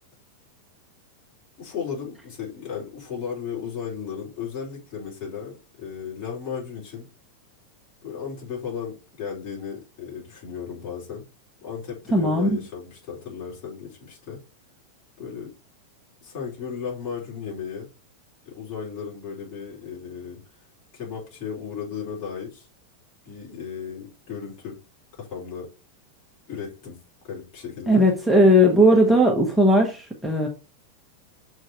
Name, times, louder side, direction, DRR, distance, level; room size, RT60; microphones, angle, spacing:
voice 1, 1.6-7.1 8.0-11.2 11.6-14.4 15.2-15.5 16.2-17.9 18.4-20.4 20.9-22.7 23.2-24.8 25.2-25.7 26.5-26.9 27.2-28.0, left 7 dB, 45° left, -4 dB, 4.2 m, -35 dB
voice 2, 12.1-12.5 27.9-30.5, equal, ahead, -1 dB, 1.3 m, -17 dB
6.3 x 4.0 x 4.5 m, 0.32 s
figure-of-eight pair, 90°, 0 cm